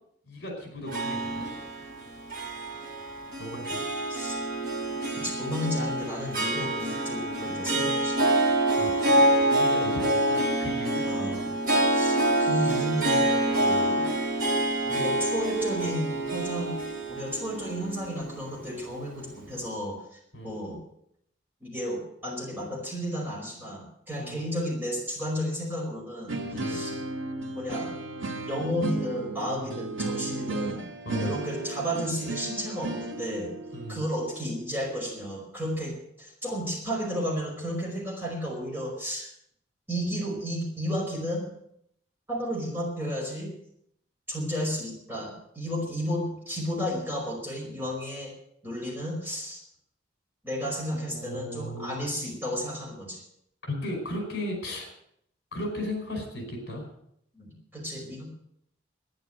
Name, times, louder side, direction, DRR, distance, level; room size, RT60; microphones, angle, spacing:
voice 1, 0.3-1.4 3.4-3.8 8.8-11.0 20.3-20.5 24.2-24.5 26.5-26.9 29.5-29.8 31.0-31.3 33.7-34.0 50.9-52.1 53.6-54.9 55.5-56.9, left 1 dB, 55° left, 3 dB, 5.0 m, -36 dB
Harp, 0.9-19.3, right 1 dB, 45° right, 3.9 m, -27 dB
voice 2, 5.2-8.2 11.0-11.5 11.9-14.1 14.8-16.8 17.1-20.8 21.6-26.3 26.6-27.0 27.5-27.9 28.4-30.8 31.2-33.5 33.9-39.3 39.9-41.5 42.3-43.6 44.3-48.3 48.6-49.6 50.4-53.2 57.3-58.3, equal, 10° right, -4 dB, 5.2 m, -33 dB
sound 1, 26.3-35.2, right 2 dB, 75° right, 1.8 m, -35 dB
12.0 x 10.5 x 8.9 m, 0.72 s
head